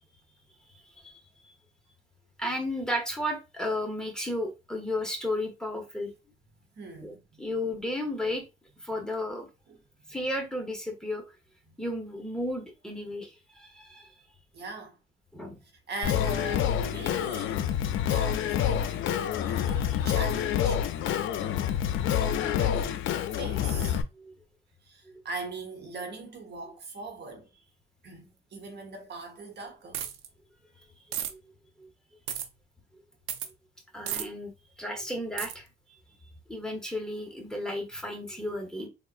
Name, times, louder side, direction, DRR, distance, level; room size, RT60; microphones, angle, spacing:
voice 1, 2.4-6.1 7.0-7.1 7.4-8.4 8.8-9.5 10.1-11.2 11.8-14.1 15.3-15.6 24.1-24.3 30.8-31.4 31.8-31.9 33.9-35.7 36.5-38.9, left 1 dB, 5° left, 1.0 m, -33 dB
voice 2, 6.7-7.4 9.7-9.8 11.7-11.8 14.5-15.0 15.9-17.7 18.1-19.1 19.4-20.8 22.2-23.1 23.3-24.0 24.8-27.6 28.0-30.0, right 3 dB, 60° right, 1.0 m, -41 dB
Singing, 16.0-24.0, left 9 dB, 80° left, 0.4 m, -27 dB
sound 1, 29.9-30.3 31.1-31.3 32.3-32.5 33.3-33.5 34.1-34.2 35.4-35.5, right 10 dB, 90° right, 0.5 m, -33 dB
3.6 x 2.4 x 2.4 m
cardioid pair, 90°, 20 cm